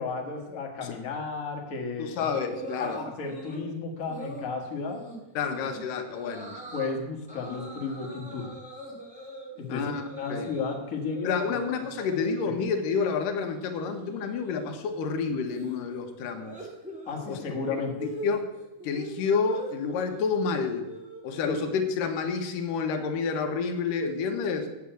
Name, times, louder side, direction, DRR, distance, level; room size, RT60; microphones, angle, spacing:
voice 1, 0.0-2.2 2.8-5.0 5.4-5.5 6.7-8.5 9.6-11.6 12.5-12.6 17.1-18.0 21.5-21.6, left 4 dB, 40° left, 1 dB, 1.2 m, -33 dB
voice 2, 2.0-3.0 5.4-6.6 9.7-10.0 10.3-10.5 11.2-16.6 17.3-18.5 18.8-20.9 21.2-24.7, left 5 dB, 80° left, 7 dB, 2.6 m, -29 dB
sound 1, 2.5-3.7 4.1-4.5 4.9-5.2 5.5-5.8 6.1-6.9 7.3-10.8 11.0-12.3 12.6-13.1 13.3-21.5, right 1 dB, 5° right, 1.2 m, -43 dB
8.4 x 8.0 x 7.8 m, 0.98 s
omnidirectional pair, 3.9 m